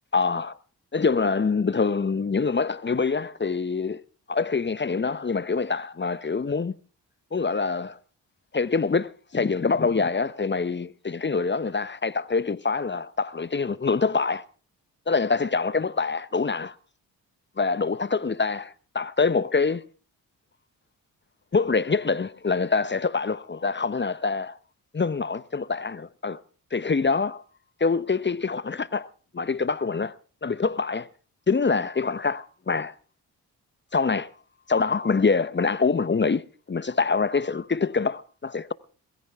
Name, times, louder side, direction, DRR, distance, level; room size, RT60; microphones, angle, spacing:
voice 1, 0.1-0.6 0.9-4.0 4.3-6.7 7.3-8.0 8.5-14.4 15.1-16.7 17.6-19.8 21.5-24.6 24.9-26.4 26.7-27.4 27.8-29.1 29.3-30.2 30.4-31.1 31.5-32.9 33.9-34.3 34.7-38.7, left 4 dB, 25° left, 0.8 m, -25 dB
22.0 x 14.5 x 3.5 m
supercardioid pair, 40°, 43 cm